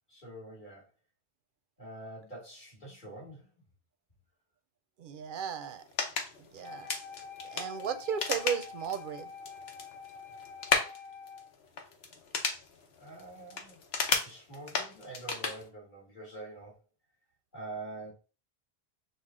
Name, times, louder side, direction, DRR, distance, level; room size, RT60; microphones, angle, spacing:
voice 1, 0.1-0.9 1.8-3.5 13.0-13.8 14.2-16.8 17.5-18.1, right 2 dB, 50° left, -4 dB, 1.9 m, -45 dB
voice 2, 5.0-5.8 6.5-6.9 7.5-9.3, right 7 dB, 60° right, 10 dB, 0.6 m, -35 dB
sound 1, 5.7-15.7, left 5 dB, 80° left, 1.1 m, -35 dB
Wind instrument woodwind instrument, 6.6-11.5, left 5 dB, 30° left, 0.9 m, -47 dB
6.4 x 2.3 x 3.6 m, 0.33 s
omnidirectional pair, 1.1 m